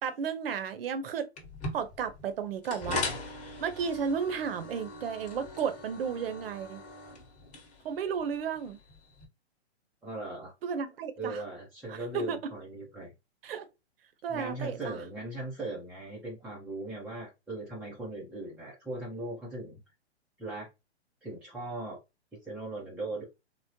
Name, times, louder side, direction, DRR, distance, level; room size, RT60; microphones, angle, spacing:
voice 1, 0.0-1.3 1.7-3.0 3.6-6.8 7.8-8.8 10.6-11.4 11.9-12.4 13.4-13.6 14.2-15.0, right 6 dB, 60° right, 0.7 m, -33 dB
sound 1, 1.4-9.3, left 2 dB, 20° left, 1.1 m, -40 dB
voice 2, 10.0-10.5 11.2-13.1 14.3-19.7 20.4-20.7 21.2-22.0 22.4-23.2, right 2 dB, 5° right, 0.4 m, -38 dB
3.7 x 2.0 x 2.7 m
hypercardioid pair, 125°, 33 cm